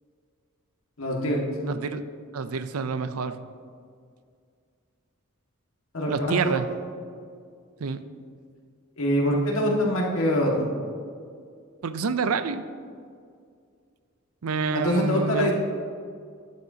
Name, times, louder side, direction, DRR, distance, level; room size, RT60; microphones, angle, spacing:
voice 1, 1.0-1.4 5.9-6.5 9.0-10.7 14.7-15.5, equal, 75° left, -1 dB, 1.8 m, -24 dB
voice 2, 1.6-2.0 2.3-3.4 6.1-6.7 7.8-8.2 11.8-12.6 14.4-15.5, right 5 dB, 90° right, 12 dB, 0.5 m, -28 dB
13.0 x 10.5 x 2.8 m, 2.2 s
head